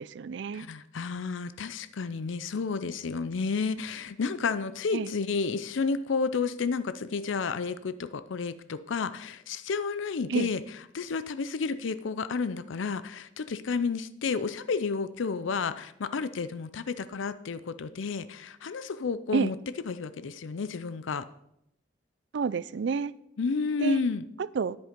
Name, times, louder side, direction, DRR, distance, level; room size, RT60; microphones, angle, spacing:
voice 1, 0.0-0.7 4.9-5.1 10.3-10.5 19.3-19.5 22.3-23.1 23.8-24.0 24.4-24.8, right 5 dB, 65° right, 19 dB, 0.4 m, -29 dB
voice 2, 0.5-10.6 10.9-19.6 19.9-21.3 23.4-24.2, left 4 dB, 80° left, 14 dB, 0.5 m, -31 dB
10.0 x 8.1 x 5.1 m, 0.79 s
head